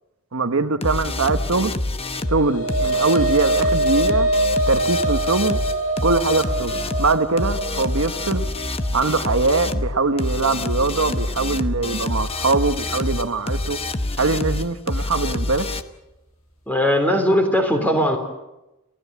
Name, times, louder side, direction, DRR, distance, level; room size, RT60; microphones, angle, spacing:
voice 1, 0.3-1.7 2.3-4.3 4.7-5.6 6.0-8.5 8.9-13.8 14.2-15.7, right 3 dB, 75° right, 1.2 m, -22 dB
sound 1, 0.8-15.8, left 2 dB, 25° left, 1.0 m, -26 dB
sound 2, 2.0-10.6, right 2 dB, 80° left, 6.8 m, -24 dB
voice 2, 16.7-18.2, equal, 10° left, 3.7 m, -19 dB
29.0 x 16.0 x 8.2 m
head